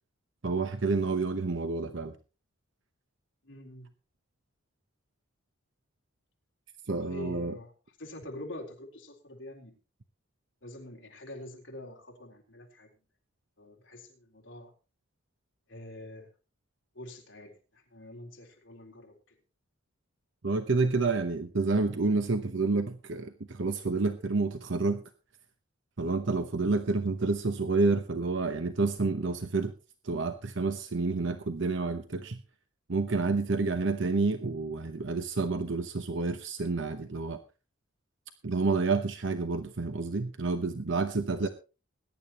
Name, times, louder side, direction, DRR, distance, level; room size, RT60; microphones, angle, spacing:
voice 1, 0.4-2.1 6.9-7.6 20.4-25.0 26.0-29.7 30.0-32.4 32.9-37.4 38.4-41.5, right 3 dB, 65° right, 8 dB, 0.9 m, -29 dB
voice 2, 3.4-3.9 6.9-7.7 8.0-9.8 10.6-12.9 13.6-14.7 15.7-16.3 16.9-19.4 41.4-41.5, left 1 dB, 65° left, 0 dB, 3.8 m, -45 dB
21.0 x 10.5 x 3.0 m, 0.32 s
head